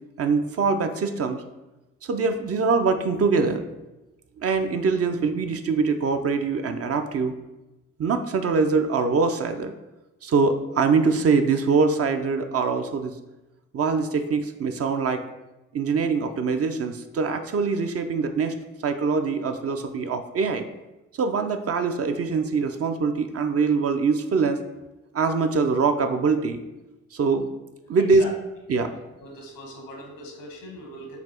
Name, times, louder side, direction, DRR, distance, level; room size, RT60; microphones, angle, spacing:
voice 1, 0.2-1.4 2.0-3.7 4.4-7.3 8.0-9.7 10.2-13.1 13.7-15.2 15.7-18.5 18.8-20.7 21.2-24.6 25.1-26.6 27.1-27.5 27.9-28.2 28.7-28.9, right 4 dB, 45° right, 7 dB, 0.5 m, -23 dB
voice 2, 29.2-31.2, left 1 dB, 90° left, 0 dB, 1.1 m, -40 dB
4.1 x 2.4 x 4.3 m, 1.0 s
supercardioid pair, 45°, 33 cm